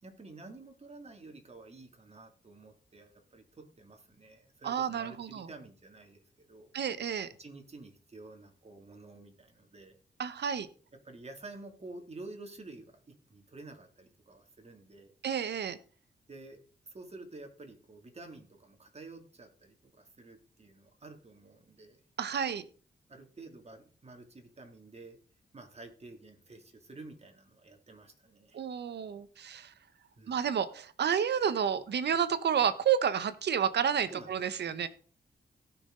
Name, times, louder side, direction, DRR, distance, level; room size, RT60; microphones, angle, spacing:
voice 1, 0.0-6.2 6.5-6.7 7.4-10.0 11.0-15.1 16.3-22.0 23.1-25.2 25.5-28.6 30.1-30.4 34.1-34.9, right 2 dB, 35° right, 4 dB, 2.6 m, -50 dB
voice 2, 4.6-5.5 6.7-7.3 10.2-10.7 15.2-15.8 22.2-22.6 28.5-29.7 30.3-34.9, right 8 dB, 75° right, 13 dB, 1.1 m, -30 dB
17.0 x 6.1 x 3.9 m, 0.41 s
cardioid pair, 80°, 17 cm